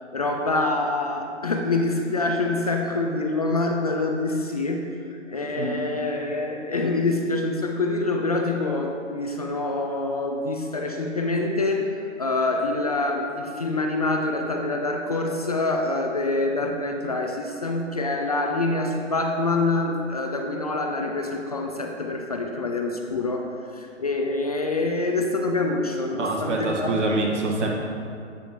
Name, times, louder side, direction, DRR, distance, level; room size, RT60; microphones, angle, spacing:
voice 1, 0.1-4.8 5.3-26.9, left 2 dB, 35° left, 2 dB, 0.4 m, -26 dB
voice 2, 26.2-27.7, right 2 dB, 70° right, -1 dB, 1.6 m, -25 dB
8.3 x 6.9 x 3.0 m, 2.3 s
hypercardioid pair, 150°, 37 cm